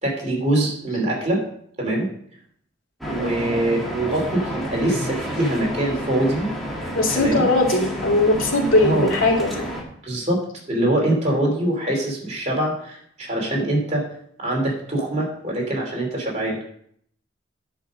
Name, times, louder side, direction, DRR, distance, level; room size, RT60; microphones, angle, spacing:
voice 1, 0.0-1.4 1.8-2.1 3.1-6.5 7.1-7.4 8.8-9.1 10.0-10.4 10.7-14.0 14.4-16.6, right 1 dB, 35° right, -1 dB, 2.9 m, -23 dB
sound 1, 3.0-9.8, equal, ahead, 2.0 m, -30 dB
voice 2, 6.9-9.6, left 2 dB, 90° left, -1 dB, 2.6 m, -19 dB
10.5 x 5.2 x 6.3 m, 0.66 s
head